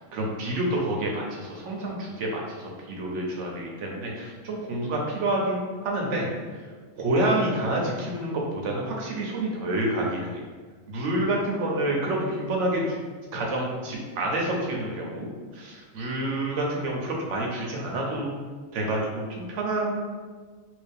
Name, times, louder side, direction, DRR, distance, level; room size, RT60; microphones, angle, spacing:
voice 1, 0.0-6.3 6.9-10.4 10.9-13.0 13.3-15.3 15.5-18.3 18.7-19.9, right 1 dB, 70° right, -1 dB, 1.0 m, -28 dB
2.9 x 2.7 x 3.5 m, 1.5 s
omnidirectional pair, 1.3 m